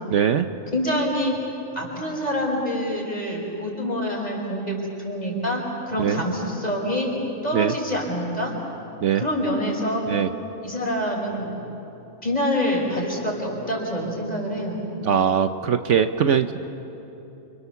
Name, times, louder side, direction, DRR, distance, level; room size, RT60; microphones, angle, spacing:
voice 1, 0.1-0.5 6.0-6.2 7.5-7.7 9.0-9.2 10.1-10.3 15.0-16.7, right 8 dB, 65° right, 8 dB, 1.1 m, -21 dB
voice 2, 0.7-1.4 1.7-7.1 7.4-8.5 9.1-10.1 10.6-11.6 12.2-14.8, equal, 30° left, -2 dB, 5.9 m, -26 dB
29.5 x 28.0 x 7.0 m, 3.0 s
omnidirectional pair, 1.4 m